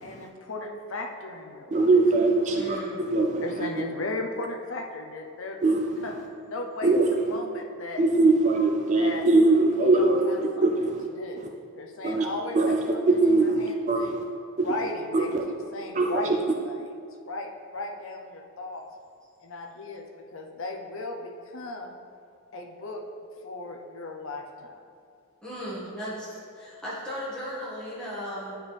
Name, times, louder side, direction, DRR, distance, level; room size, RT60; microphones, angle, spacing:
voice 1, 0.0-1.9 3.4-5.6 6.0-6.1 6.5-8.0 8.9-9.2 9.8-11.5 11.7-14.1 14.5-16.9 17.3-18.8 19.4-20.1 20.3-22.0 22.5-23.0 23.4-24.8, left 2 dB, 60° left, 2 dB, 0.7 m, -36 dB
voice 2, 1.7-2.8 3.1-3.4 5.6-5.8 6.8-7.1 8.0-10.3 10.6-10.9 12.0-12.3 12.5-12.8 13.2-13.6 13.9-14.2 14.6-14.7 15.1-15.4 16.0-16.1, right 3 dB, 30° right, 2 dB, 0.3 m, -21 dB
voice 3, 2.5-3.0 25.4-28.5, equal, 5° left, -10 dB, 1.7 m, -36 dB
9.6 x 4.6 x 3.4 m, 2.4 s
head